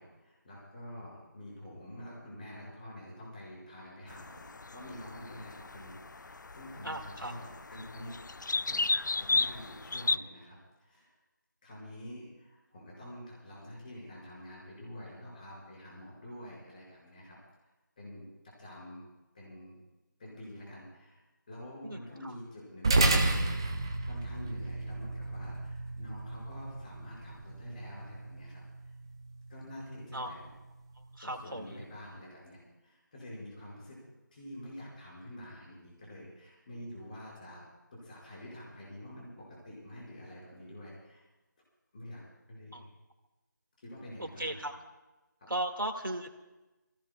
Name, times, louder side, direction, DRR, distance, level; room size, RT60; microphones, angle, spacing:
voice 1, 0.0-8.1 8.5-11.2 11.6-17.4 18.0-18.2 18.6-19.0 19.3-19.8 20.2-23.3 24.0-28.6 29.5-30.5 31.2-34.0 34.3-37.6 37.9-41.3 41.9-42.2 42.5-42.8 43.8-44.6, left 1 dB, 25° left, -6 dB, 5.7 m, -47 dB
sound 1, 4.1-10.2, left 3 dB, 65° left, 0.4 m, -34 dB
voice 2, 6.8-7.3 21.8-22.3 30.1-30.3 31.0-31.8 42.7-42.9 44.2-44.7 45.5-46.3, right 1 dB, 85° right, 5 dB, 2.1 m, -37 dB
sound 2, 22.8-31.5, right 2 dB, 15° right, 0.6 m, -33 dB
27.0 x 17.0 x 2.4 m, 1.1 s
figure-of-eight pair, 165°, 11 cm